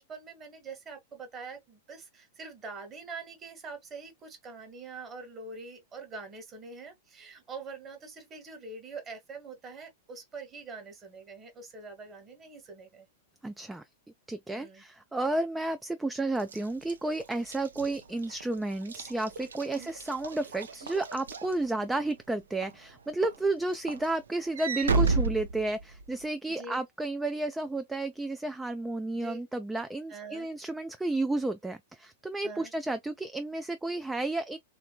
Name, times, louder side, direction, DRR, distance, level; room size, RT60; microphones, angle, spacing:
voice 1, 0.0-13.1 14.5-14.8 19.8-19.9 26.5-26.8 29.1-29.4 30.1-30.5 32.4-32.7, right 4 dB, 25° right, 1.3 m, -44 dB
voice 2, 13.4-13.8 14.3-34.6, right 2 dB, 5° right, 0.3 m, -32 dB
Walk footsteps / Slam, 16.4-22.1 22.6-22.9 23.2-26.2, right 3 dB, 70° right, 0.5 m, -33 dB
3.4 x 2.6 x 2.2 m
figure-of-eight pair, 95°, 0 cm